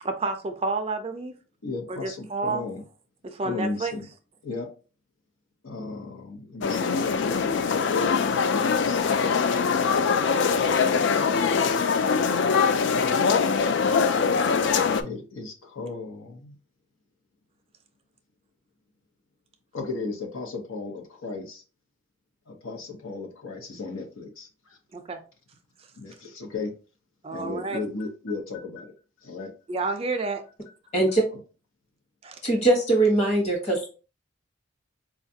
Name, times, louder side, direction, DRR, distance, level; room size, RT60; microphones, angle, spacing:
voice 1, 0.0-1.3 1.9-2.6 3.2-3.9 24.9-25.2 27.2-27.8 29.7-30.4 32.2-32.4, right 3 dB, 30° right, 0.3 m, -29 dB
voice 2, 1.6-2.8 3.4-4.1 4.4-4.7 5.6-6.9 7.3-7.5 8.7-9.2 15.0-16.6 19.7-21.6 22.5-24.8 26.0-26.7 27.3-28.9 29.2-29.5, left 3 dB, 90° left, 0.9 m, -35 dB
sound 1, 6.6-15.0, left 5 dB, 60° left, 0.3 m, -23 dB
voice 3, 30.9-31.2 32.4-33.9, right 2 dB, 30° left, 1.0 m, -21 dB
4.4 x 2.4 x 2.7 m
head